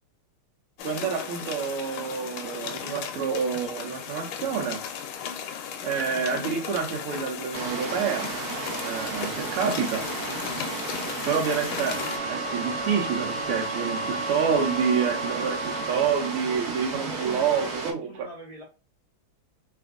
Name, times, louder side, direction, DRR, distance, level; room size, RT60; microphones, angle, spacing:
sound 1, 0.8-12.2, left 8 dB, 75° left, 1.4 m, -36 dB
voice 1, 0.8-4.8 5.8-8.3 8.8-10.1 11.3-18.3, right 6 dB, 80° right, 1.5 m, -28 dB
sound 2, 7.5-17.9, right 3 dB, 60° right, 1.0 m, -34 dB
voice 2, 9.2-9.6 16.9-17.8 18.1-18.6, right 1 dB, 30° right, 0.9 m, -42 dB
sound 3, 11.7-16.4, right 1 dB, 10° right, 1.5 m, -34 dB
3.4 x 2.9 x 2.3 m
omnidirectional pair, 2.4 m